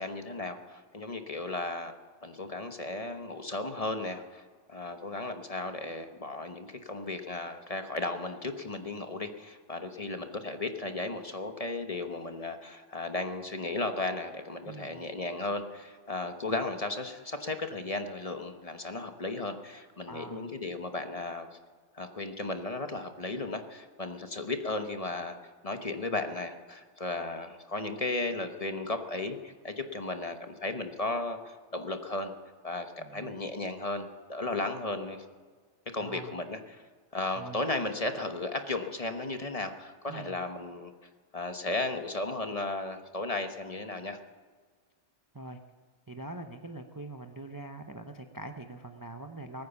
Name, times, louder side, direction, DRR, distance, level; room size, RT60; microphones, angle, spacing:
voice 1, 0.0-1.9 2.2-21.5 21.9-32.3 32.6-35.2 35.9-36.8 37.1-40.9 41.3-44.2, left 2 dB, 35° left, 6 dB, 1.1 m, -35 dB
voice 2, 14.6-15.0 20.1-20.5 33.0-33.5 36.0-36.4 37.4-37.6 40.1-40.4 45.3-45.6 46.1-49.7, right 2 dB, 20° right, 6 dB, 0.6 m, -43 dB
20.5 x 9.5 x 7.0 m, 1.5 s
omnidirectional pair, 1.2 m